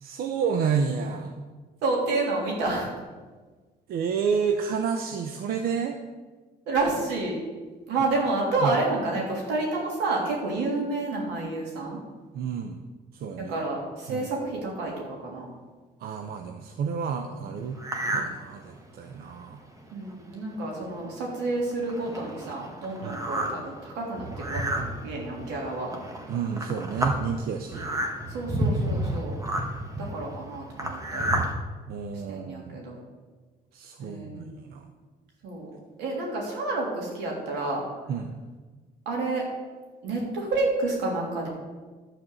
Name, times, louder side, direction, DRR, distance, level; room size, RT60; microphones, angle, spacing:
voice 1, 0.0-1.5 3.9-6.0 8.6-8.7 12.3-12.8 13.1-13.6 14.1-14.3 16.0-17.8 18.1-19.6 23.0-23.2 26.3-27.8 31.9-32.8 33.7-34.9 38.1-38.3, right 6 dB, 65° right, 5 dB, 0.8 m, -30 dB
voice 2, 1.8-2.9 6.7-7.4 7.9-12.0 13.5-15.5 19.9-25.9 28.3-29.4 29.6-31.3 32.3-33.0 34.0-34.5 35.4-35.7 36.0-37.8 39.0-39.4 40.0-41.5, right 2 dB, 90° right, -2 dB, 3.2 m, -29 dB
sound 1, 17.8-18.3 18.8-18.9 19.5-19.6 19.9-20.1 20.8-20.9 21.3-31.5, right 1 dB, 20° right, 1.5 m, -30 dB
11.5 x 4.6 x 7.8 m, 1.4 s
cardioid pair, 110°, 17 cm